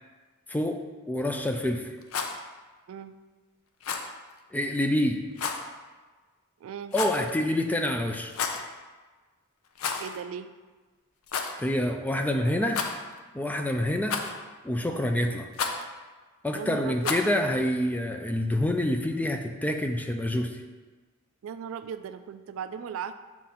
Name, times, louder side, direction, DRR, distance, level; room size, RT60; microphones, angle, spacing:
voice 1, 0.5-1.9 4.5-5.3 6.9-8.3 11.6-12.8 13.3-14.2 14.6-15.5 16.4-20.6, left 1 dB, 10° left, 4 dB, 0.3 m, -27 dB
Rattle, 2.0-2.4 3.8-4.1 5.4-5.6 6.9-7.3 8.2-8.7 9.7-10.2 10.4-10.5 11.3-11.5 12.7-13.2 14.1-14.5 15.5-15.8 17.0-17.3, left 5 dB, 85° left, 0.5 m, -31 dB
voice 2, 6.6-6.9 10.0-10.5 16.5-17.1 21.4-23.1, right 7 dB, 70° right, 11 dB, 0.3 m, -37 dB
6.0 x 3.8 x 4.2 m, 1.3 s
head